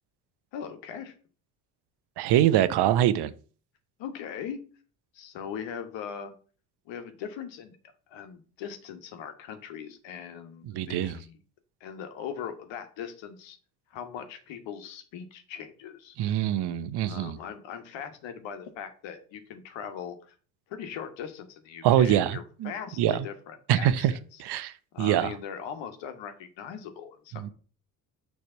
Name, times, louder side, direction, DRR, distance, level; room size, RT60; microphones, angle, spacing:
voice 1, 0.5-1.1 4.0-4.6 5.1-6.3 6.9-7.8 8.1-11.4 11.8-13.6 13.9-16.1 17.0-20.3 20.7-24.4 24.9-27.5, left 8 dB, 65° left, 1.4 m, -40 dB
voice 2, 2.2-3.3 10.6-11.2 16.2-17.4 21.8-22.7 23.0-23.3 23.7-24.1 24.4-25.3 27.3-27.5, right 11 dB, 55° right, 0.7 m, -24 dB
6.5 x 3.5 x 5.5 m
hypercardioid pair, 65°, 48 cm